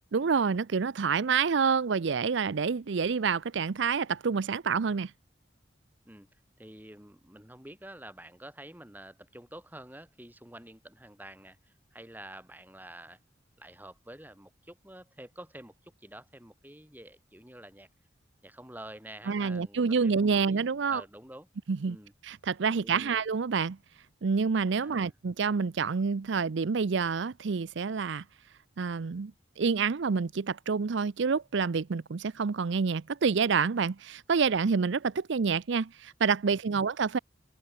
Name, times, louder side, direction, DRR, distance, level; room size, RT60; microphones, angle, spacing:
voice 1, 0.1-5.1 19.3-21.0 21.7-22.0 22.2-23.8 24.2-28.2 28.8-29.3 29.6-37.2, right 5 dB, 70° right, 0.5 m, -28 dB
voice 2, 6.6-13.2 13.6-17.9 18.4-21.5 21.8-22.1 22.8-23.2 24.8-25.1 36.7-36.8, right 1 dB, 10° right, 4.4 m, -48 dB
open air
head